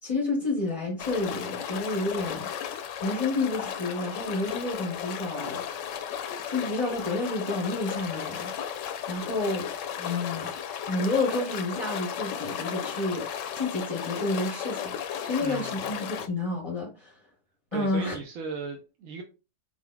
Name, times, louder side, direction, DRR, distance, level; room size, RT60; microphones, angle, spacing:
voice 1, 0.0-2.5 3.0-5.9 6.5-8.5 9.1-9.7 10.0-10.5 10.9-15.0 15.2-17.2 17.7-18.1, left 2 dB, 30° left, 0.7 m, -30 dB
sound 1, 1.0-16.3, left 8 dB, 70° left, 0.9 m, -35 dB
voice 2, 15.4-15.9 17.7-19.2, right 4 dB, 75° right, 1.0 m, -36 dB
4.4 x 3.9 x 2.2 m
omnidirectional pair, 1.4 m